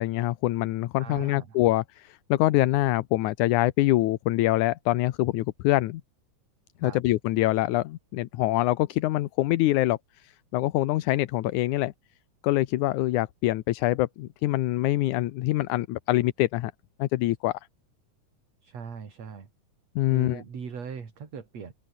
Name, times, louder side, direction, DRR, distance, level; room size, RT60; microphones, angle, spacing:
voice 1, 0.0-6.0 6.8-10.0 10.2-11.9 12.4-16.7 17.0-17.6 20.0-20.4, left 16 dB, 75° left, 2.2 m, -25 dB
voice 2, 1.0-1.6 6.8-7.0 18.6-19.5 20.1-21.7, right 6 dB, 55° right, 4.3 m, -39 dB
open air
omnidirectional pair, 3.7 m